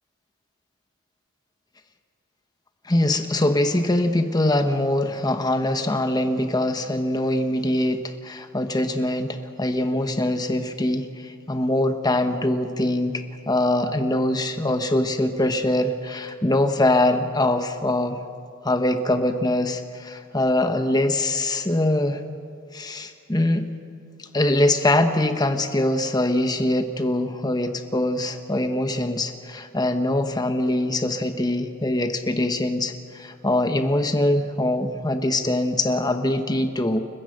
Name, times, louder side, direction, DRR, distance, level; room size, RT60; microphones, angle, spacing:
voice 1, 2.8-18.2 18.6-22.2 22.7-23.7 24.3-37.0, left 1 dB, 20° left, 7 dB, 1.0 m, -23 dB
29.5 x 14.5 x 6.5 m, 2.3 s
head